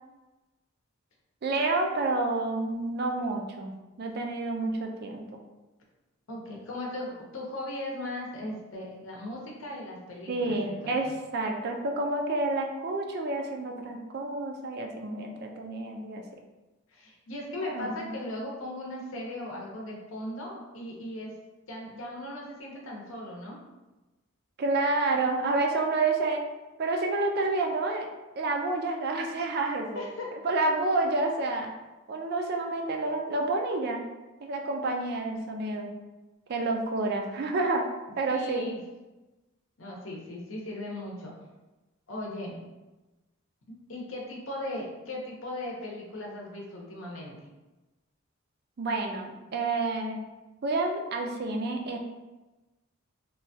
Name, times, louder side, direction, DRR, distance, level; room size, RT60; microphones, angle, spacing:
voice 1, 1.4-3.7 4.0-5.2 10.3-16.2 17.6-18.1 24.6-26.4 26.8-28.1 28.4-30.0 30.4-31.7 32.1-34.0 34.4-35.9 36.5-37.9 38.2-38.6 48.8-50.2 50.6-52.0, right 2 dB, 50° right, 3 dB, 0.3 m, -29 dB
voice 2, 6.3-11.0 16.9-21.3 21.7-23.6 29.9-30.3 38.3-38.8 39.8-41.3 42.1-42.5 43.9-47.3, left 1 dB, 70° left, -2 dB, 0.7 m, -38 dB
3.1 x 2.2 x 2.7 m, 1.1 s
head